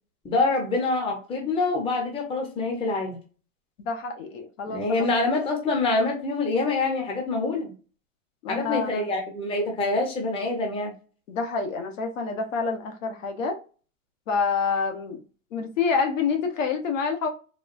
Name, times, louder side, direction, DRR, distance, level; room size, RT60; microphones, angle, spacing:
voice 1, 0.2-3.2 4.7-7.7 8.5-10.9, left 3 dB, 15° left, 0.8 m, -25 dB
voice 2, 3.8-5.1 8.4-9.1 11.3-13.6 14.3-15.2 15.5-17.3, left 5 dB, 70° left, 1.1 m, -27 dB
4.0 x 2.3 x 2.5 m
hypercardioid pair, 135°, 40 cm